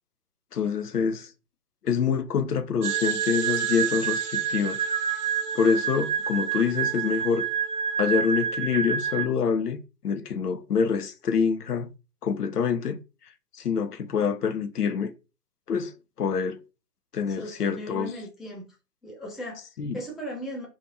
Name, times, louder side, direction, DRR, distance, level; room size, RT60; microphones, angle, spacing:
voice 1, 0.5-1.3 1.8-4.8 5.5-7.5 8.0-9.8 10.0-11.9 12.2-13.0 13.6-15.1 15.7-15.9 16.2-16.6 17.1-18.1 19.8-20.0, left 6 dB, 70° left, 0.5 m, -26 dB
sound 1, 2.8-9.3, right 8 dB, 65° right, 0.6 m, -28 dB
voice 2, 17.3-18.8 19.0-19.7 19.9-20.7, equal, ahead, 0.3 m, -37 dB
2.7 x 2.5 x 2.5 m
figure-of-eight pair, 145°, 50 cm